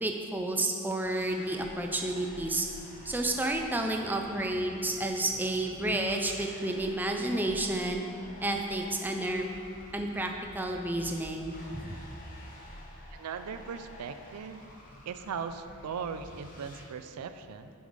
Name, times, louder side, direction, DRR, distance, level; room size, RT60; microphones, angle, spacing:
voice 1, 0.0-2.7 3.1-8.0 8.4-9.4 9.9-11.9, right 1 dB, 10° right, 3 dB, 0.4 m, -31 dB
sound 1, 1.0-16.8, left 1 dB, 40° left, 1.1 m, -49 dB
voice 2, 13.1-14.6 15.0-17.7, right 6 dB, 90° right, 9 dB, 0.4 m, -38 dB
6.9 x 5.6 x 5.0 m, 2.7 s
head